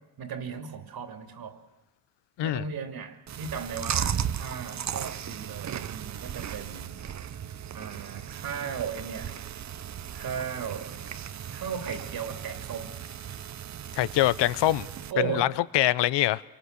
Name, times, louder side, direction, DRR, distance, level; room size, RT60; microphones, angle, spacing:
voice 1, 0.2-1.6 2.4-7.0 7.7-9.4 10.1-10.9 11.5-13.0 15.1-15.5, right 7 dB, 55° right, 2.9 m, -36 dB
Chewing mastication, 3.3-15.1, right 9 dB, 40° right, 0.8 m, -36 dB
voice 2, 14.0-14.9 15.2-16.4, left 15 dB, 75° left, 0.8 m, -24 dB
28.5 x 24.0 x 6.8 m
cardioid pair, 125°, 43 cm